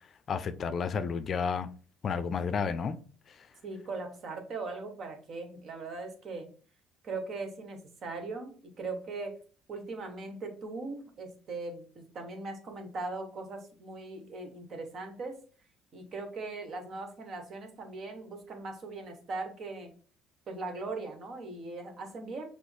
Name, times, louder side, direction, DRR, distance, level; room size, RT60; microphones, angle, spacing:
voice 1, 0.3-1.7 2.0-3.0 3.3-3.5, left 6 dB, 50° left, 0.4 m, -31 dB
voice 2, 3.6-6.5 7.0-9.4 9.7-15.4 15.9-20.0 20.5-22.4, right 3 dB, 55° right, 1.2 m, -39 dB
6.0 x 2.0 x 3.3 m
supercardioid pair, 75°, 0 cm